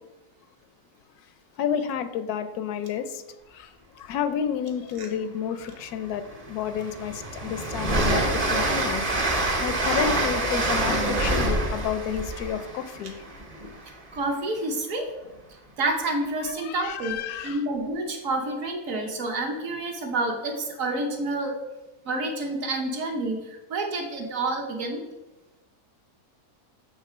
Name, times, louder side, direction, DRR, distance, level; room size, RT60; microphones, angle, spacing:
voice 1, 1.6-3.2 3.5-3.7 4.0-9.0 9.6-13.2 16.6-17.6, left 8 dB, 85° left, 9 dB, 1.1 m, -30 dB
Train, 5.7-5.8 6.3-14.0, right 2 dB, 35° right, 0.7 m, -26 dB
voice 2, 14.1-15.1 15.8-17.2 17.4-21.6 22.0-25.1, right 2 dB, 65° right, 2 dB, 1.3 m, -28 dB
7.7 x 3.2 x 4.9 m, 1.0 s
omnidirectional pair, 1.6 m